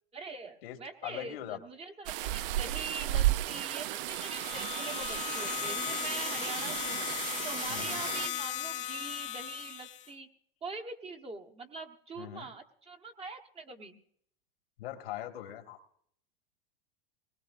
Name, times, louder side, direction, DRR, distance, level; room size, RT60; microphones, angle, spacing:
voice 1, 0.1-7.0 7.4-10.3 10.6-14.0, right 3 dB, 20° right, 4 dB, 1.0 m, -43 dB
voice 2, 1.0-1.6 7.7-8.1 12.2-12.5 14.8-15.8, left 12 dB, 80° left, 6 dB, 1.7 m, -41 dB
sound 1, 2.1-8.3, right 14 dB, 65° right, 0.5 m, -34 dB
electric toothbrush, 3.9-10.1, left 10 dB, 25° left, 0.7 m, -37 dB
21.0 x 19.5 x 2.4 m, 0.67 s
supercardioid pair, 130°, 30 cm